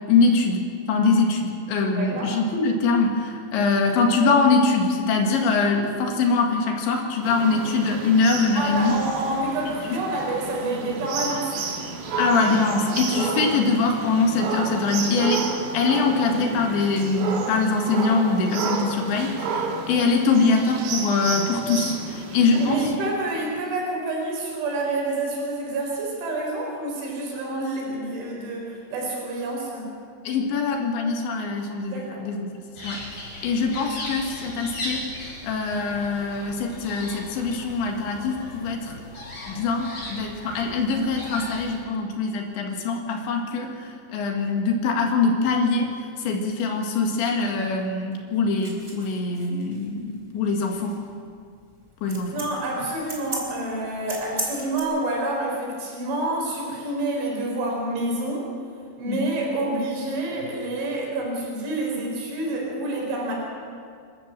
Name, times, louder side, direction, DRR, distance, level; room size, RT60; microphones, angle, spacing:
voice 1, 0.1-9.0 9.7-10.0 12.2-22.9 30.3-32.5 32.8-33.0 33.4-39.0 39.5-51.0 52.0-52.3 59.1-59.3, left 4 dB, 80° left, 1 dB, 4.2 m, -23 dB
voice 2, 2.0-2.3 8.6-11.6 22.6-29.9 31.9-32.2 52.3-58.5 59.0-63.3, right 2 dB, 90° right, -1 dB, 6.6 m, -28 dB
sound 1, 7.2-23.0, right 4 dB, 75° right, 4.0 m, -31 dB
sound 2, 32.8-41.8, left 1 dB, 40° left, 7.5 m, -38 dB
sound 3, 48.6-54.8, right 1 dB, 15° right, 3.6 m, -36 dB
28.0 x 13.0 x 7.6 m, 2.2 s
omnidirectional pair, 5.2 m